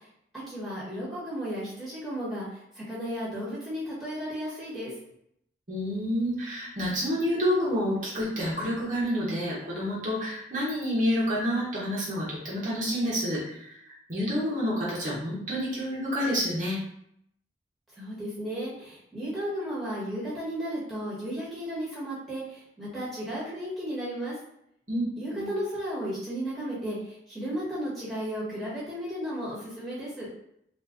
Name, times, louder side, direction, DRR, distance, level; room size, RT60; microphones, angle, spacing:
voice 1, 0.5-2.5 2.7-4.9 18.0-24.3 25.2-30.3, equal, ahead, -9 dB, 1.6 m, -34 dB
voice 2, 5.7-16.8 24.9-25.0 25.3-25.5, equal, 45° right, -7 dB, 1.2 m, -29 dB
4.0 x 2.6 x 3.6 m, 0.74 s
head